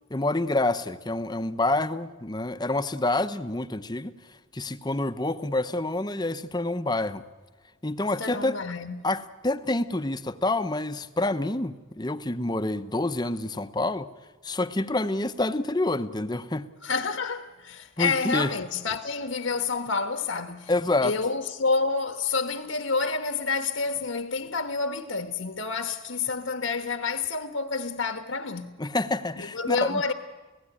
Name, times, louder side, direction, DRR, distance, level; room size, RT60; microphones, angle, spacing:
voice 1, 0.1-4.1 4.5-7.2 7.8-8.6 9.0-14.1 14.4-16.7 18.0-18.5 20.7-21.1 28.8-30.0, left 2 dB, 20° left, 0.7 m, -27 dB
voice 2, 8.2-9.1 16.8-20.7 21.0-28.8 29.4-30.1, left 4 dB, 80° left, 1.2 m, -29 dB
30.0 x 16.5 x 10.0 m
head